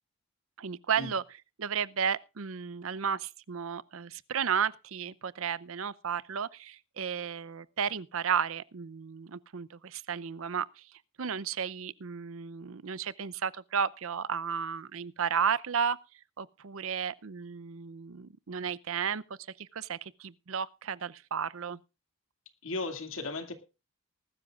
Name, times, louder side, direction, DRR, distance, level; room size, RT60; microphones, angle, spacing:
voice 1, 0.6-1.2 1.6-10.9 11.2-16.0 16.4-19.2 19.6-21.8, right 7 dB, 70° right, 0.6 m, -33 dB
voice 2, 22.6-23.5, left 3 dB, 70° left, 2.3 m, -35 dB
20.0 x 12.5 x 2.4 m
head